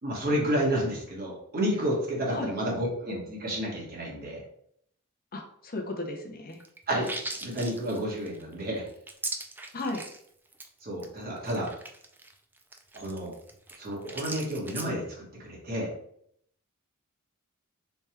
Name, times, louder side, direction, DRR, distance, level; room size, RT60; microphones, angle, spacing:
voice 1, 0.0-4.4 6.9-8.8 10.8-11.7 12.9-13.3 13.8-15.9, equal, 45° right, -3 dB, 1.3 m, -30 dB
voice 2, 5.3-6.6 9.7-10.0, left 2 dB, 40° left, 4 dB, 0.6 m, -34 dB
sound 1, 6.5-10.3 10.5-10.7 11.0-11.1 11.4-14.9, right 2 dB, 10° right, 0.3 m, -39 dB
3.4 x 2.3 x 4.3 m, 0.68 s
head